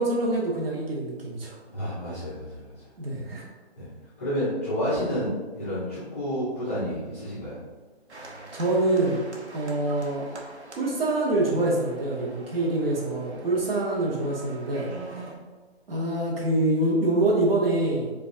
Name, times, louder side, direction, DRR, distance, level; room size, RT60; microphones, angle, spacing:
voice 1, 0.0-1.6 3.0-3.4 8.5-9.2 9.5-10.3 10.8-14.9 15.9-18.1, right 2 dB, 60° right, -4 dB, 0.9 m, -25 dB
voice 2, 1.7-2.7 3.8-3.9 4.2-7.6, equal, 15° left, -12 dB, 0.5 m, -30 dB
sound 1, 8.1-15.4, right 2 dB, 90° right, 0.9 m, -44 dB
4.9 x 2.3 x 2.5 m, 1.3 s
hypercardioid pair, 155°, 33 cm